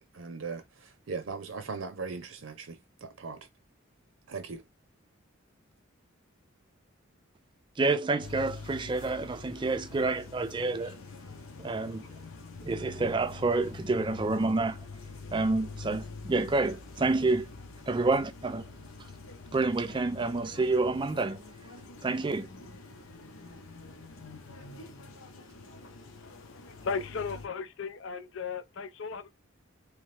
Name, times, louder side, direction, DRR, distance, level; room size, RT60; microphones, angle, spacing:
voice 1, 0.0-3.4 4.3-4.6 11.8-11.9, right 4 dB, 75° right, 0.6 m, -39 dB
voice 2, 7.8-11.0 11.6-12.0 12.6-14.8 15.3-17.5 17.9-18.6 19.5-21.4 22.0-22.5, right 3 dB, 25° right, 0.3 m, -28 dB
sound 1, 8.2-27.5, left 3 dB, 90° left, 1.0 m, -46 dB
voice 3, 26.2-29.3, left 5 dB, 70° left, 0.5 m, -36 dB
3.2 x 3.1 x 3.2 m
head